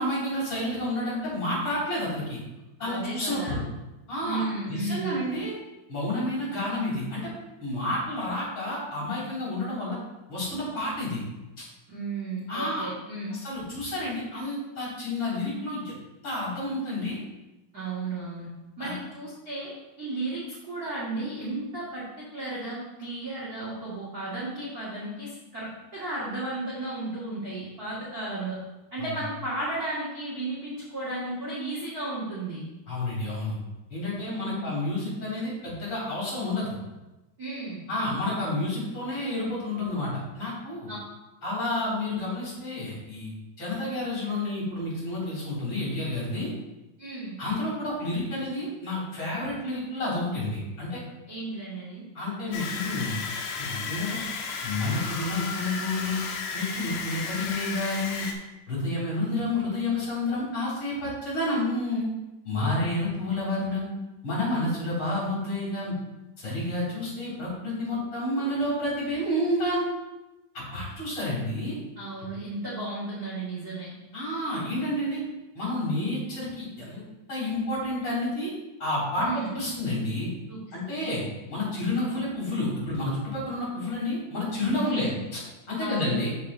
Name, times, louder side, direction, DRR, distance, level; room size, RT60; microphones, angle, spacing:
voice 1, 0.0-2.4 2.8-3.6 4.1-5.5 5.9-7.3 7.6-10.0 10.3-11.2 11.6-11.7 12.5-12.9 13.3-15.9 16.2-17.2 18.8-18.9 29.0-29.2 32.9-33.6 33.9-36.8 37.9-40.9 41.4-46.5 47.4-51.0 52.1-53.2 53.6-54.2 54.6-56.2 56.5-58.2 58.7-62.1 62.4-63.9 64.2-65.9 66.4-69.9 70.5-71.8 74.1-75.2 75.5-77.0 77.3-78.5 78.8-80.3 80.7-81.2 81.5-85.4 85.7-86.3, left 1 dB, 40° left, -7 dB, 3.9 m, -30 dB
voice 2, 2.8-3.6 4.2-5.2 11.9-13.4 17.7-18.5 18.8-28.6 28.9-32.6 34.2-34.8 37.4-37.9 40.9-41.0 47.0-47.4 51.3-52.0 72.0-73.9 79.2-79.6 80.5-81.1 84.8-85.2 85.8-86.2, right 2 dB, 40° right, -8 dB, 1.4 m, -34 dB
sound 1, 52.5-58.3, left 5 dB, 75° left, 1.9 m, -34 dB
13.0 x 5.8 x 2.6 m, 1.0 s
omnidirectional pair, 4.2 m